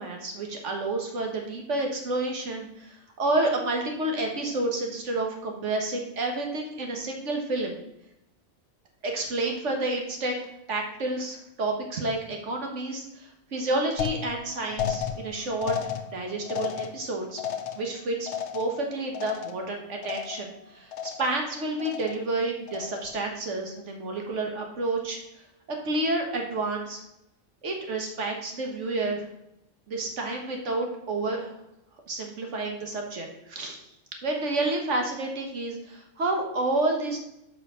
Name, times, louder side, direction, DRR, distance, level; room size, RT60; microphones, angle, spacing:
voice 1, 0.0-7.8 9.0-10.4 10.7-17.4 17.7-25.2 25.8-27.0 27.6-29.2 29.9-31.5 32.1-33.8 34.2-37.2, right 2 dB, 70° right, 2 dB, 1.5 m, -30 dB
sound 1, 14.0-19.8 20.0-20.6 20.9-21.5 21.8-22.3 22.7-23.2, left 8 dB, 65° left, 1.0 m, -34 dB
7.1 x 5.0 x 5.0 m, 0.83 s
omnidirectional pair, 1.3 m